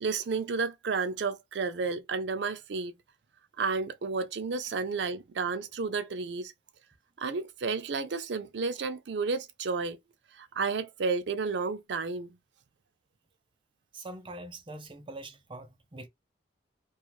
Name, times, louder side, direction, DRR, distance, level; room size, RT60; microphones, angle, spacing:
voice 1, 0.0-2.9 3.6-6.5 7.2-10.0 10.3-12.4, right 4 dB, 80° right, 0.5 m, -31 dB
voice 2, 13.9-16.1, right 2 dB, 30° right, 0.5 m, -43 dB
2.4 x 2.3 x 3.0 m
head